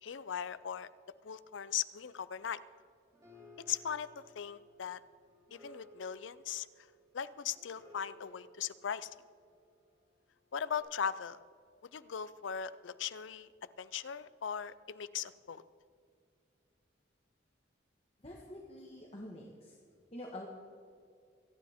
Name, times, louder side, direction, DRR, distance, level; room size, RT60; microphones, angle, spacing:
voice 1, 0.0-0.9 1.2-2.6 3.7-4.1 4.4-5.0 5.5-6.7 7.1-9.1 10.5-11.4 11.8-13.5 13.8-15.6, left 8 dB, 75° left, 16 dB, 0.5 m, -39 dB
sound 1, 2.6-10.0 10.7-10.8, equal, 20° right, 4.4 m, -60 dB
voice 2, 18.2-19.7 20.1-20.5, left 1 dB, 30° left, -2 dB, 1.4 m, -47 dB
25.5 x 9.9 x 3.6 m, 2.3 s
head